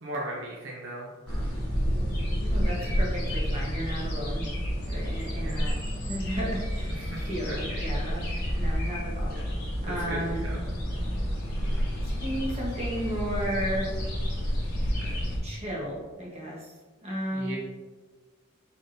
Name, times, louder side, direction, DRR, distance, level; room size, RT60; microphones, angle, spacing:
voice 1, 0.0-1.6 2.8-2.9 5.4-5.7 7.0-7.6 8.3-8.9 9.3-9.4 10.1-10.6 11.6-12.0 14.9-15.2 17.3-17.6, right 1 dB, 65° right, -3 dB, 0.6 m, -39 dB
sound 1, 1.3-15.4, equal, 55° left, 1.1 m, -30 dB
voice 2, 2.4-4.4 4.9-5.8 6.1-6.9 7.3-8.3 8.6-9.3 9.8-10.4 12.0-13.9 15.4-16.7 17.0-17.6, equal, 30° right, -4 dB, 1.1 m, -33 dB
4.0 x 3.5 x 2.6 m, 1.3 s
head